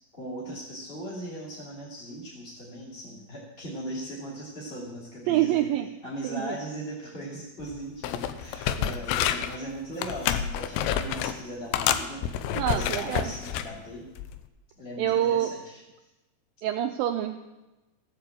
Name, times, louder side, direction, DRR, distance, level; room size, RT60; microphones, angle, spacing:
voice 1, 0.1-5.6 6.0-14.1 14.8-15.8, right 1 dB, 15° left, -6 dB, 2.5 m, -39 dB
voice 2, 5.3-5.9 6.2-6.6 8.8-8.9 12.5-13.3 15.0-15.6 16.6-17.4, right 11 dB, 90° right, 6 dB, 2.0 m, -26 dB
sound 1, 7.6-7.8 8.0-9.6 10.0-11.4 11.7-13.7 14.2-14.4, left 10 dB, 85° left, 2.9 m, -28 dB
15.5 x 8.0 x 7.8 m, 1.1 s
omnidirectional pair, 4.7 m